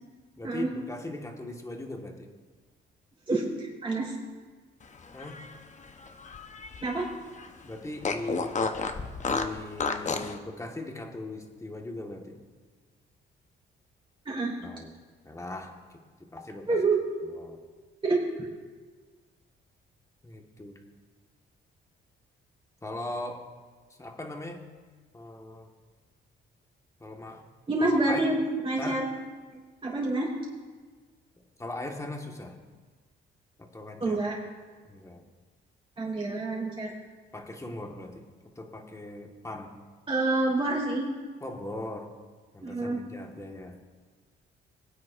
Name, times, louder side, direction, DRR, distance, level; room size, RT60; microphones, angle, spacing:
voice 1, 0.4-2.3 5.1-5.3 7.6-8.6 9.2-12.4 14.6-14.9 15.2-15.8 16.2-16.8 17.3-17.6 20.2-20.8 22.8-23.4 24.0-24.6 25.1-25.7 27.0-27.4 27.8-28.3 28.8-29.0 31.6-32.5 33.6-34.2 34.9-35.2 37.3-38.2 38.5-39.7 41.4-42.1 42.5-43.8, left 2 dB, 15° left, 2 dB, 1.5 m, -39 dB
voice 2, 3.3-4.1 6.8-7.1 14.3-14.5 16.7-17.0 18.0-18.2 27.7-29.1 29.5-30.3 34.0-34.4 36.0-36.9 40.1-41.1 42.6-43.0, right 2 dB, 25° right, -5 dB, 3.8 m, -27 dB
Fart, 5.0-7.1 7.4-7.5 8.0-10.4, left 4 dB, 35° left, 0.9 m, -32 dB
21.5 x 9.5 x 2.5 m, 1.4 s
cardioid pair, 90°, 20 cm